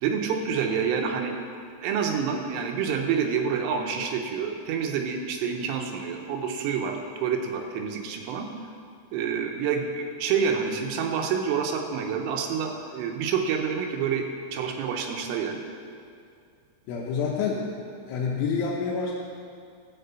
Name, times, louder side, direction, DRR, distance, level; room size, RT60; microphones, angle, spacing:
voice 1, 0.0-1.4 1.8-8.5 9.1-14.3 14.5-15.6, right 6 dB, 80° right, 3 dB, 3.3 m, -28 dB
voice 2, 16.9-17.7 18.1-19.2, left 5 dB, 80° left, -4 dB, 3.2 m, -27 dB
13.5 x 4.8 x 8.1 m, 2.4 s
omnidirectional pair, 5.8 m